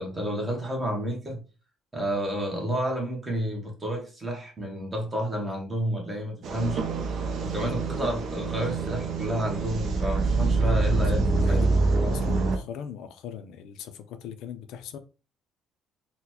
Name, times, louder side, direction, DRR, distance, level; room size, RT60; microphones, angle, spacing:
voice 1, 0.0-1.4 1.9-6.8 7.4-11.6, equal, 15° right, 1.0 m, -30 dB
sound 1, 6.4-12.6, right 3 dB, 50° right, 0.5 m, -26 dB
voice 2, 10.4-15.0, left 9 dB, 75° left, 0.4 m, -40 dB
3.9 x 2.1 x 2.9 m
cardioid pair, 160°, 0 cm